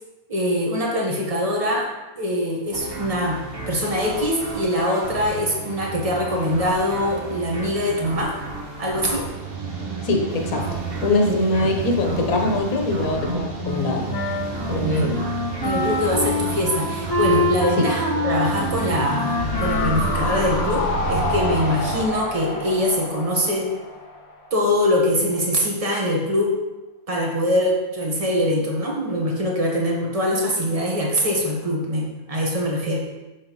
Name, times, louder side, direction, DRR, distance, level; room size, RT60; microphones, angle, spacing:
voice 1, 0.3-1.8 2.1-3.3 3.7-8.3 8.8-9.2 11.2-11.7 14.8-15.3 15.6-20.8 21.1-23.7 24.5-26.5 27.1-33.0, left 1 dB, 25° right, -2 dB, 1.3 m, -23 dB
sound 1, 2.7-22.0, right 5 dB, 45° right, 1.1 m, -31 dB
voice 2, 10.0-10.7 11.0-14.2 14.7-15.2 17.8-17.9, left 2 dB, 80° left, 2 dB, 1.4 m, -22 dB
Wind instrument woodwind instrument, 13.6-21.1, left 2 dB, 35° left, 0.3 m, -27 dB
sound 2, 19.4-24.6 24.9-25.0, left 2 dB, 50° left, 1.2 m, -28 dB
6.9 x 6.3 x 3.1 m, 1.1 s
omnidirectional pair, 1.5 m